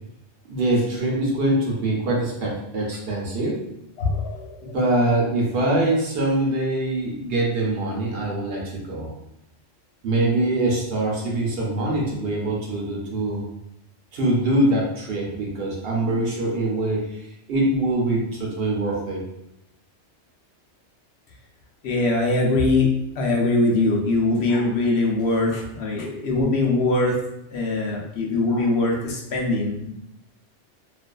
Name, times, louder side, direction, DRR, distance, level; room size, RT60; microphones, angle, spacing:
voice 1, 0.5-3.6 4.7-9.1 10.0-13.4 14.1-19.2, right 1 dB, 65° right, -3 dB, 0.8 m, -23 dB
voice 2, 4.0-4.8 21.8-27.2 27.5-29.9, left 2 dB, 70° left, -1 dB, 0.8 m, -22 dB
2.4 x 2.4 x 2.2 m, 0.80 s
omnidirectional pair, 1.2 m